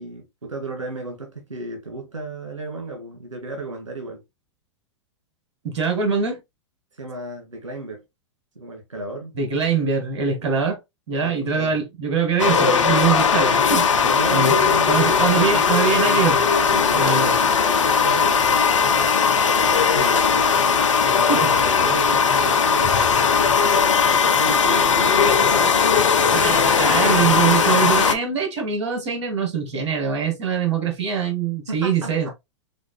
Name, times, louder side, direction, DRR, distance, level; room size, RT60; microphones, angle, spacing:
voice 1, 0.0-4.2 6.9-8.0 8.6-9.3 11.2-11.8 14.0-15.2 16.7-17.4 18.0-18.8 19.6-20.6 21.1-25.3 31.7-32.3, right 2 dB, 80° right, 1.7 m, -34 dB
voice 2, 5.6-6.4 9.3-10.8 11.1-13.9 14.3-14.6 14.9-16.4 17.0-17.3 21.3-21.5 26.3-32.3, right 6 dB, 60° right, 1.9 m, -23 dB
sound 1, 12.4-28.2, left 6 dB, 75° left, 0.8 m, -18 dB
5.1 x 3.7 x 2.3 m
figure-of-eight pair, 100°, 16 cm